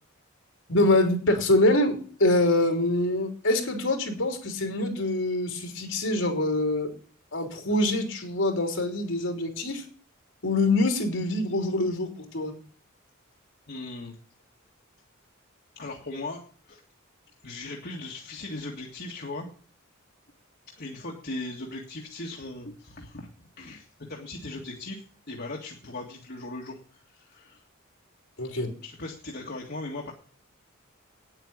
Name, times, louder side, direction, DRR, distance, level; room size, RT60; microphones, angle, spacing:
voice 1, 0.7-6.9 7.3-9.8 10.4-12.5 28.4-28.7, left 2 dB, 65° left, 4 dB, 3.3 m, -25 dB
voice 2, 13.7-14.1 15.8-16.8 17.4-19.5 20.8-23.3 23.6-25.0 25.3-27.6 28.8-30.1, left 2 dB, 50° left, -1 dB, 2.0 m, -38 dB
9.4 x 8.9 x 8.7 m, 0.43 s
head